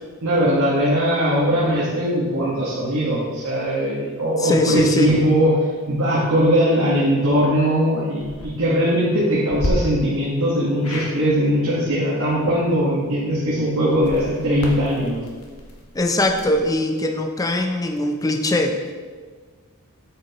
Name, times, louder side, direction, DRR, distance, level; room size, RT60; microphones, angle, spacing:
voice 1, 0.2-5.5 5.9-15.2, equal, 65° right, -7 dB, 1.4 m, -20 dB
voice 2, 4.4-5.1 15.9-18.9, left 1 dB, 15° left, 4 dB, 0.5 m, -21 dB
sound 1, 8.1-8.5 9.5-9.7 10.8-11.1 13.9-16.7, left 1 dB, 70° left, 1.2 m, -32 dB
8.0 x 6.8 x 3.0 m, 1.5 s
head